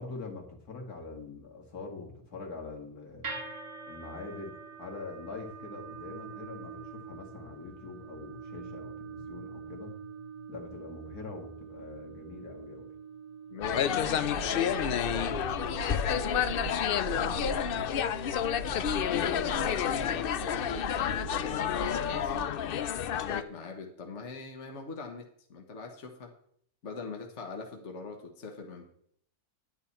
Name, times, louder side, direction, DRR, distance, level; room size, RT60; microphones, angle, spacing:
voice 1, 0.0-3.4 3.9-4.5 4.8-10.0 10.5-12.9 18.7-19.0, left 3 dB, 90° left, 0 dB, 2.6 m, -44 dB
sound 1, 3.2-19.4, right 5 dB, 85° right, 2.9 m, -46 dB
voice 2, 13.5-15.5 16.0-17.7 18.6-22.6 23.1-26.3 26.8-28.8, left 3 dB, 55° left, 3 dB, 1.6 m, -42 dB
sound 2, 13.6-23.4, left 9 dB, 75° left, 0.5 m, -30 dB
sound 3, 14.0-22.4, right 9 dB, 65° right, 0.9 m, -42 dB
10.5 x 9.6 x 4.3 m, 0.66 s
omnidirectional pair, 1.6 m